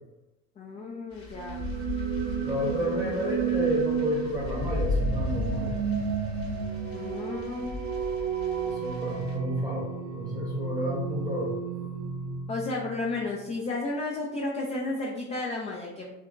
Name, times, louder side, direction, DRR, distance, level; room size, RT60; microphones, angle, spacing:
voice 1, 0.6-1.7 6.9-7.9 12.5-16.2, left 2 dB, 20° left, -2 dB, 0.4 m, -33 dB
sound 1, 1.1-9.4, left 2 dB, 40° left, 0.9 m, -35 dB
sound 2, 1.4-13.3, right 6 dB, 45° right, 0.7 m, -32 dB
voice 2, 2.4-5.8 8.6-11.6, equal, 10° right, -4 dB, 0.8 m, -31 dB
2.7 x 2.5 x 2.2 m, 0.99 s
hypercardioid pair, 80°, 36 cm